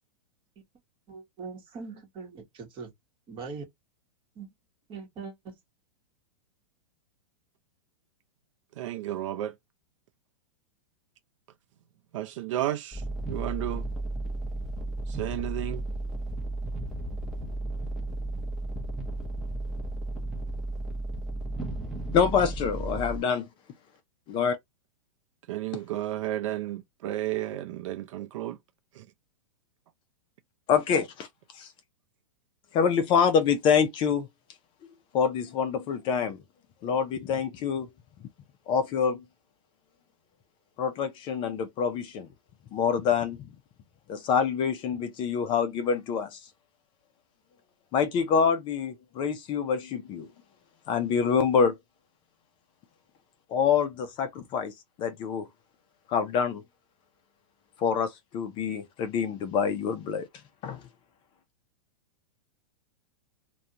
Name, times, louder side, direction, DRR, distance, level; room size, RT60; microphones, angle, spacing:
voice 1, 1.1-2.9 3.3-3.6 4.3-4.5 4.9-5.5, right 5 dB, 30° right, 1.1 m, -41 dB
voice 2, 8.8-9.5 12.1-13.0 13.3-13.9 15.2-15.8 25.5-28.6 29.0-29.1, right 13 dB, 60° right, 0.5 m, -32 dB
sound 1, 12.9-23.2, right 2 dB, ahead, 0.7 m, -34 dB
voice 3, 22.1-23.5 24.3-24.6 30.7-31.3 31.5-31.7 32.7-34.3 35.1-36.4 36.8-37.9 38.7-39.2 40.8-42.3 42.7-43.4 44.1-46.4 47.9-50.3 50.9-51.7 53.5-54.7 55.0-55.5 56.1-56.6 57.8-60.3 60.6-60.8, left 6 dB, 30° left, 0.4 m, -26 dB
2.4 x 2.2 x 2.8 m
hypercardioid pair, 130°, 18 cm